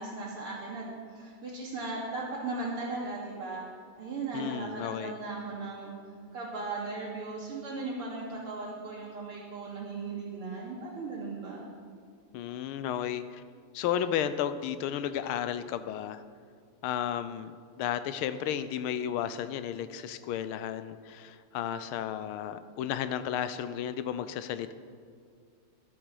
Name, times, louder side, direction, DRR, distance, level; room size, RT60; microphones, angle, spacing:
voice 1, 0.0-3.6 4.0-5.9 6.3-11.7, right 3 dB, 75° right, -7 dB, 3.7 m, -37 dB
voice 2, 4.3-5.1 12.3-13.4 13.7-16.2 16.8-24.7, left 9 dB, 80° left, 12 dB, 1.5 m, -33 dB
12.0 x 9.2 x 6.4 m, 2.2 s
omnidirectional pair, 2.4 m